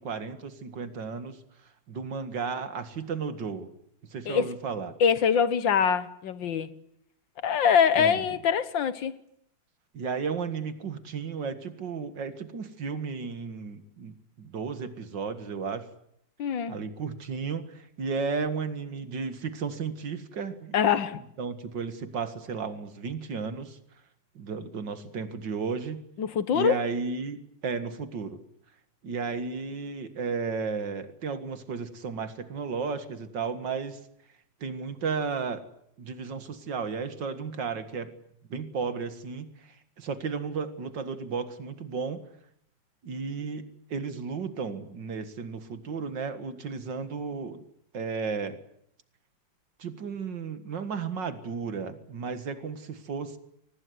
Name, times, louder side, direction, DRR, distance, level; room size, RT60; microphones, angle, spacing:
voice 1, 0.0-1.4 1.9-3.7 4.1-5.0 8.0-8.2 9.9-15.9 16.7-20.7 21.4-23.8 24.4-26.0 26.5-28.4 29.0-34.0 34.6-35.6 36.0-38.1 38.5-42.2 43.0-47.6 47.9-48.6 49.8-53.4, right 5 dB, 70° right, 2.4 m, -34 dB
voice 2, 5.0-6.7 7.4-9.1 16.4-16.8 20.7-21.2 26.2-26.8, left 7 dB, 80° left, 1.9 m, -24 dB
24.0 x 19.5 x 9.6 m
omnidirectional pair, 2.0 m